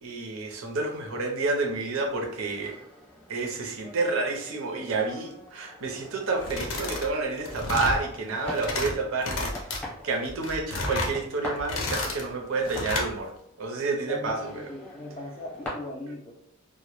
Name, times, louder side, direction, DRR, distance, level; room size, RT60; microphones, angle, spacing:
voice 1, 0.0-2.8 3.3-9.7 10.0-13.3 13.6-14.6, right 3 dB, 75° right, 1 dB, 0.5 m, -29 dB
sound 1, 2.1-15.7, left 1 dB, 10° left, 0.7 m, -45 dB
sound 2, 6.4-7.1 7.4-8.0 8.4-8.9 9.2-9.8 10.3-11.1 11.6-12.2 12.6-13.1, left 2 dB, 75° left, 0.5 m, -31 dB
voice 2, 14.1-16.3, left 1 dB, 25° left, 1 dB, 0.3 m, -39 dB
2.1 x 2.0 x 2.9 m, 0.71 s
head